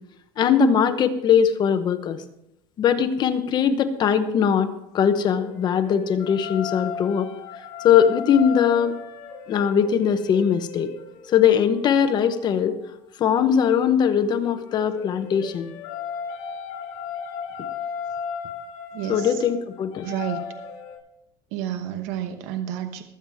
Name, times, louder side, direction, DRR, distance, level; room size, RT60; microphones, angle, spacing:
voice 1, 0.4-2.2 2.8-4.7 4.9-7.3 7.8-9.0 9.5-10.9 11.3-12.8 13.2-15.7 19.1-20.1, left 7 dB, 35° left, 9 dB, 1.0 m, -20 dB
sound 1, 4.8-13.0 14.2-21.0, left 7 dB, 80° left, 4.0 m, -36 dB
voice 2, 18.9-19.4 20.0-20.4 21.5-23.0, right 10 dB, 75° right, 7 dB, 1.1 m, -30 dB
21.0 x 8.1 x 3.6 m, 0.80 s
cardioid pair, 155°, 12 cm